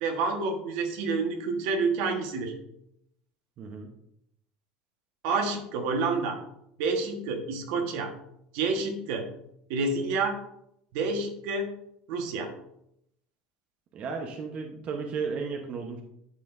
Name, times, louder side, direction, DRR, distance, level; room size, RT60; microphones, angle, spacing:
voice 1, 0.0-2.5 5.2-6.4 6.8-8.1 8.5-9.3 9.7-10.4 10.9-11.7 12.1-12.5, right 4 dB, 75° right, 3 dB, 1.5 m, -28 dB
voice 2, 3.6-3.9 13.9-16.0, right 5 dB, 45° right, 2 dB, 1.1 m, -34 dB
9.7 x 6.8 x 2.7 m, 0.78 s
supercardioid pair, 115°, 3 cm